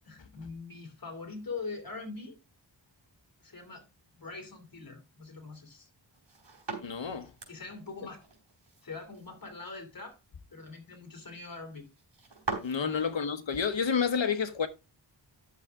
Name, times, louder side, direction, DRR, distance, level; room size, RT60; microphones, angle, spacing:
voice 1, 0.1-2.4 3.4-3.8 4.1-5.9 7.0-8.2 8.8-10.2 10.5-11.9 12.8-13.1, left 4 dB, 50° left, 3.1 m, -43 dB
sound 1, 6.1-13.1, right 3 dB, 70° right, 4.1 m, -43 dB
voice 2, 6.8-7.3 12.6-14.7, left 6 dB, 75° left, 1.2 m, -29 dB
11.0 x 7.2 x 3.7 m
wide cardioid pair, 95°, 45 cm